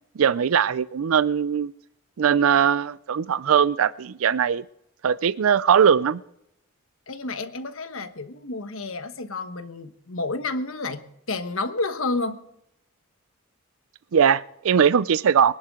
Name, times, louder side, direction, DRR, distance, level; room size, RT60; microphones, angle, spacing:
voice 1, 0.2-1.7 2.2-4.6 5.0-6.2 14.1-15.5, right 7 dB, 75° right, 18 dB, 0.4 m, -20 dB
voice 2, 7.1-12.4, left 3 dB, 70° left, 9 dB, 1.2 m, -30 dB
23.0 x 11.0 x 3.7 m, 0.80 s
head